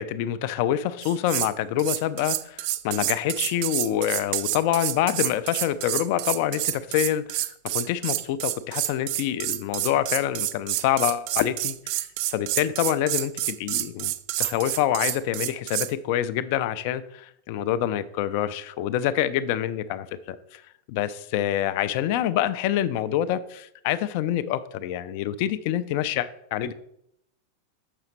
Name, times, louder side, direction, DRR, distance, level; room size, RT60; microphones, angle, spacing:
voice 1, 0.0-7.5 7.7-14.1 14.4-20.6 20.9-26.7, left 11 dB, 45° left, 13 dB, 0.4 m, -26 dB
sound 1, 1.0-1.5 1.8-15.9, right 15 dB, 45° right, 0.3 m, -28 dB
6.8 x 5.6 x 4.4 m, 0.75 s
figure-of-eight pair, 90°, 0 cm